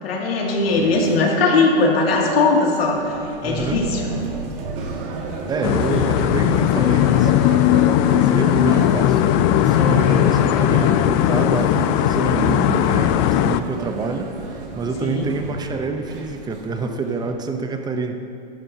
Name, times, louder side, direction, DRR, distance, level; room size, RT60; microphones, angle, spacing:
voice 1, 0.0-3.1 3.4-4.0 15.0-15.3, left 3 dB, 90° left, -2 dB, 2.5 m, -19 dB
sound 1, 0.6-17.3, right 3 dB, 70° right, 2.2 m, -32 dB
voice 2, 3.4-3.9 5.5-7.3 8.0-18.2, right 4 dB, 15° right, 6 dB, 0.7 m, -27 dB
sound 2, 5.6-13.6, left 13 dB, 40° left, 0.4 m, -18 dB
14.0 x 12.0 x 2.8 m, 2.6 s
supercardioid pair, 135°, 29 cm